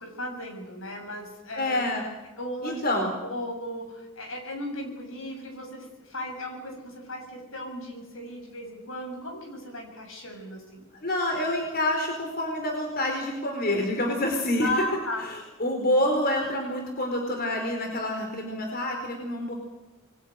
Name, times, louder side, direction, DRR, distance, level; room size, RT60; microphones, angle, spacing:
voice 1, 0.0-1.8 2.4-2.8 3.3-10.8 14.6-15.3, left 1 dB, 75° left, 3 dB, 7.4 m, -36 dB
voice 2, 1.5-2.0 2.6-3.1 11.0-14.7 15.2-19.5, left 1 dB, 50° left, 2 dB, 4.5 m, -27 dB
28.5 x 22.5 x 6.6 m, 1.1 s
head